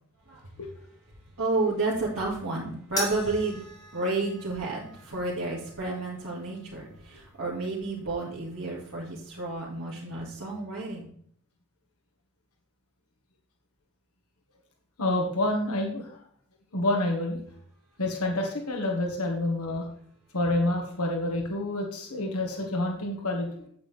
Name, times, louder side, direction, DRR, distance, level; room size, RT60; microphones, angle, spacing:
voice 1, 1.4-3.6 3.9-11.1, right 2 dB, 60° right, -8 dB, 2.4 m, -31 dB
sound 1, 3.0-9.5, left 2 dB, 15° left, 1.8 m, -42 dB
voice 2, 15.0-16.2 16.7-17.4 18.0-19.9 20.3-23.5, left 1 dB, 80° left, 1 dB, 1.8 m, -28 dB
8.9 x 8.4 x 3.5 m, 0.62 s
head